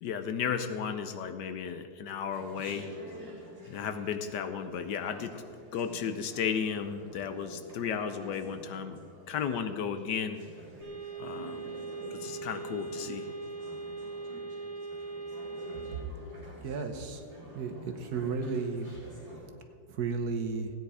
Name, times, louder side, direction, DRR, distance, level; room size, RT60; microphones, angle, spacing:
voice 1, 0.0-2.9 3.7-5.5 5.7-9.0 9.3-10.4 11.2-11.6 12.1-13.3, left 7 dB, 70° left, 9 dB, 1.3 m, -34 dB
Chatter, 2.3-19.4, equal, 30° right, 4.1 m, -50 dB
sound 1, 10.8-16.0, right 4 dB, 10° left, 3.6 m, -40 dB
voice 2, 16.6-17.2 17.5-18.9 19.9-20.7, right 4 dB, 60° right, 7 dB, 1.4 m, -33 dB
16.0 x 9.4 x 5.0 m, 2.4 s
omnidirectional pair, 2.0 m